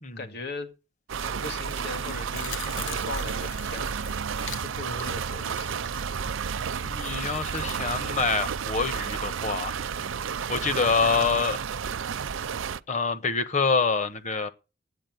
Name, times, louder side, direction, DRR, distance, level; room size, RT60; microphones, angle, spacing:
voice 1, 0.2-0.7 1.2-4.0 4.6-6.1, left 2 dB, 55° left, 2.1 m, -39 dB
sound 1, 1.1-12.8, right 6 dB, 85° right, 0.6 m, -31 dB
sound 2, 1.7-9.2 9.5-9.6, left 8 dB, 75° left, 1.1 m, -45 dB
voice 2, 6.9-9.7 10.5-11.6 12.9-14.5, left 4 dB, 35° left, 1.1 m, -26 dB
9.0 x 8.8 x 9.3 m
head